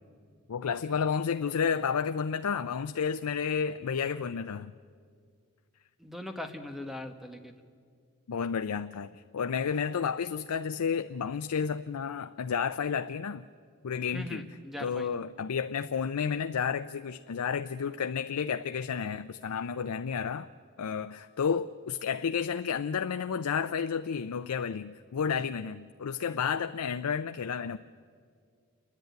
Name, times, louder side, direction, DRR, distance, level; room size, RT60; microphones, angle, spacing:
voice 1, 0.5-4.7 8.3-13.5 13.8-14.5 14.8-20.5 20.8-27.8, left 6 dB, 85° left, 0.5 m, -31 dB
voice 2, 6.0-7.6 14.1-15.1, left 1 dB, ahead, 1.1 m, -40 dB
28.5 x 10.5 x 9.2 m
head